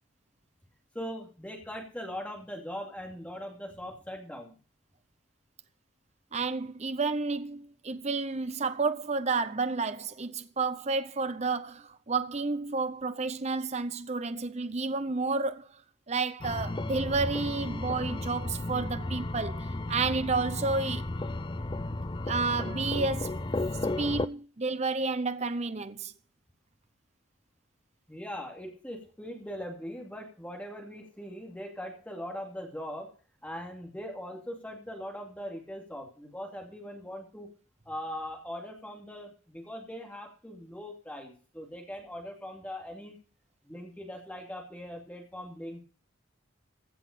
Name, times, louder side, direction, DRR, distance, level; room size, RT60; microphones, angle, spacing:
voice 1, 0.9-4.5 28.1-33.1 33.4-37.5 37.9-43.2 43.6-45.8, equal, 5° left, 2.4 m, -40 dB
voice 2, 6.3-15.8 16.1-21.0 22.3-23.4 24.0-26.1, right 4 dB, 35° right, 0.7 m, -31 dB
sound 1, 16.4-24.3, left 2 dB, 25° left, 0.5 m, -34 dB
15.5 x 6.0 x 6.5 m
head